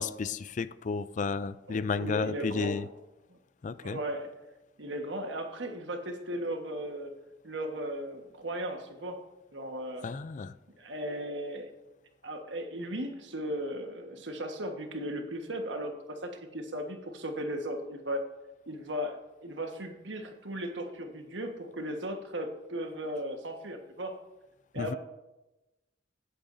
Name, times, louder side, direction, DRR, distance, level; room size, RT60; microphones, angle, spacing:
voice 1, 0.0-2.9 3.6-4.0 10.0-10.5 24.8-24.9, left 4 dB, 40° left, 15 dB, 0.4 m, -32 dB
voice 2, 1.7-2.9 3.3-3.4 3.8-4.3 4.8-7.1 7.4-9.2 9.5-10.1 10.8-11.7 12.2-18.2 18.7-24.2 24.7-25.0, right 1 dB, 75° right, 4 dB, 1.4 m, -36 dB
16.0 x 8.7 x 2.7 m, 1.0 s
head